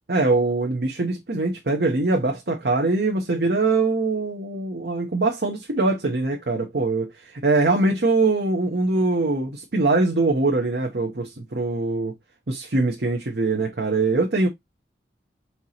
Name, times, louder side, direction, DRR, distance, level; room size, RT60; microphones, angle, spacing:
voice 1, 0.1-12.1 12.5-14.5, right 3 dB, 60° right, 0.9 m, -22 dB
4.6 x 2.9 x 4.0 m
head